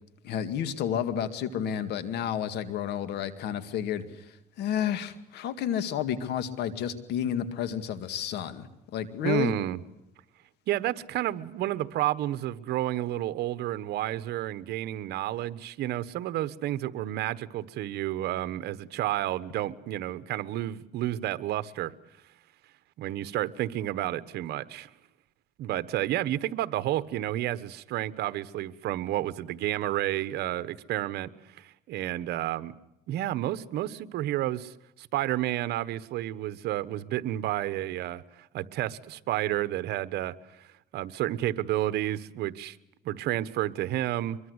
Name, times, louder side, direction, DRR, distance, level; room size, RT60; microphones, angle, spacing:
voice 1, 0.2-8.7 8.9-9.5, left 9 dB, 80° left, 12 dB, 2.2 m, -31 dB
voice 2, 9.2-9.8 10.7-21.9 23.0-24.9 25.6-32.7 33.1-40.7 40.9-42.8 43.0-44.4, right 14 dB, 75° right, 14 dB, 1.2 m, -31 dB
24.0 x 23.0 x 8.1 m, 0.88 s
cardioid pair, 110°, 17 cm